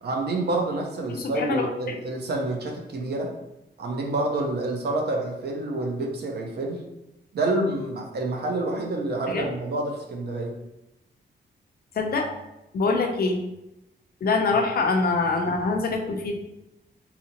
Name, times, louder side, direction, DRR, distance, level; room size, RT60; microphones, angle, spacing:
voice 1, 0.0-3.3 3.8-6.8 7.3-10.5, right 2 dB, 65° right, 1 dB, 0.7 m, -28 dB
voice 2, 1.1-1.7 9.3-9.5 12.0-12.3 12.7-13.4 14.2-16.3, left 3 dB, 55° left, 2 dB, 0.6 m, -24 dB
4.0 x 2.8 x 2.8 m, 0.91 s
wide cardioid pair, 175°, 19 cm